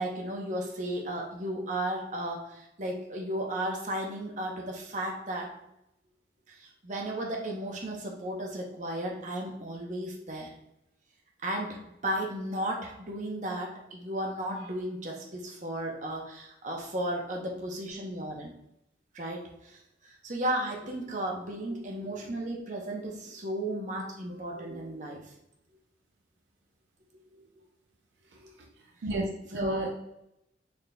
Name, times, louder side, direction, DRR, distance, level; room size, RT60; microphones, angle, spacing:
voice 1, 0.0-5.5 6.5-10.5 11.4-18.5 19.1-25.2 27.3-27.4 29.5-29.9, right 1 dB, 45° right, 0 dB, 0.8 m, -34 dB
voice 2, 24.3-25.1 29.0-29.9, right 1 dB, 75° right, 1 dB, 0.5 m, -35 dB
3.9 x 3.7 x 2.2 m, 0.82 s
head